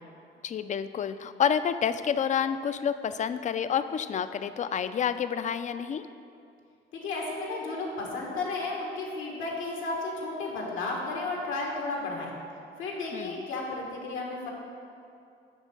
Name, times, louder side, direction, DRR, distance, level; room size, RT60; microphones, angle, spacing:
voice 1, 0.4-6.1 13.1-13.4, left 8 dB, 40° left, 12 dB, 0.4 m, -29 dB
voice 2, 6.9-12.3 12.8-14.5, left 3 dB, 90° left, -1 dB, 1.6 m, -33 dB
9.0 x 3.7 x 6.4 m, 2.5 s
cardioid pair, 90°, 20 cm